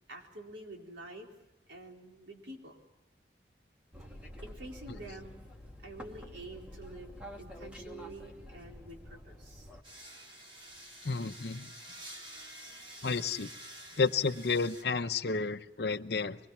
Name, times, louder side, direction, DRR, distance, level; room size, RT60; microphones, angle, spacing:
voice 1, 0.1-1.3 1.7-2.8 4.4-5.3 5.8-9.7 10.2-10.5, right 2 dB, 85° right, 1 dB, 4.2 m, -48 dB
sound 1, 3.9-9.8, equal, 5° right, 2.2 m, -48 dB
sound 2, 9.8-14.8, right 1 dB, 30° right, 3.4 m, -49 dB
voice 2, 11.0-11.7 13.0-13.5 14.0-16.4, left 4 dB, 65° left, 11 dB, 0.9 m, -31 dB
24.0 x 22.5 x 7.3 m, 0.99 s
head